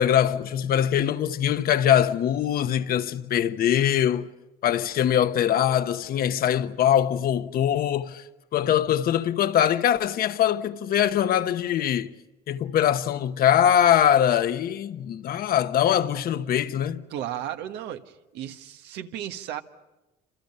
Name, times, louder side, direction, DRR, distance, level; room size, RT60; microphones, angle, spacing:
voice 1, 0.0-4.3 4.6-8.2 8.5-12.1 12.5-17.0, left 10 dB, 60° left, 1.1 m, -22 dB
voice 2, 17.1-19.6, right 11 dB, 85° right, 1.5 m, -34 dB
28.5 x 27.5 x 5.6 m
cardioid pair, 110°, 17 cm